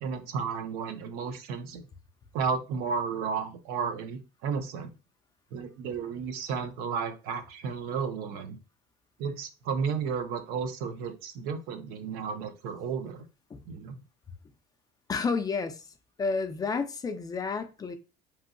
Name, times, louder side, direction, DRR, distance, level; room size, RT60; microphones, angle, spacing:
voice 1, 0.0-1.9 2.3-4.9 5.5-8.6 9.2-13.2 13.7-14.0, right 6 dB, 70° right, 0.6 m, -33 dB
voice 2, 15.1-15.9 16.2-18.0, left 4 dB, 25° left, 0.4 m, -30 dB
3.0 x 2.7 x 2.5 m
cardioid pair, 115°, 16 cm